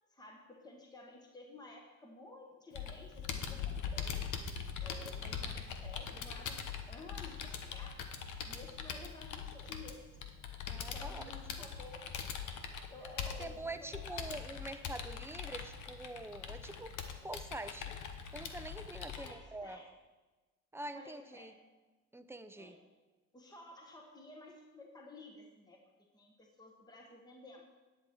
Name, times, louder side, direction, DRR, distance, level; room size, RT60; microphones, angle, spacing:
voice 1, 0.1-4.3 4.8-8.0 8.5-10.2 10.7-12.1 12.9-14.4 19.1-19.9 20.9-21.6 22.6-22.8 23.3-25.8 26.1-27.6, left 2 dB, 15° left, 1 dB, 1.3 m, -53 dB
Computer keyboard, 2.8-19.3, left 7 dB, 80° left, 1.0 m, -42 dB
voice 2, 10.7-11.2 11.6-11.7 13.4-16.9 17.2-19.8 20.7-21.5 22.1-22.8, right 2 dB, 10° right, 9 dB, 0.6 m, -45 dB
10.5 x 8.3 x 4.6 m, 1.2 s
cardioid pair, 90°, 30 cm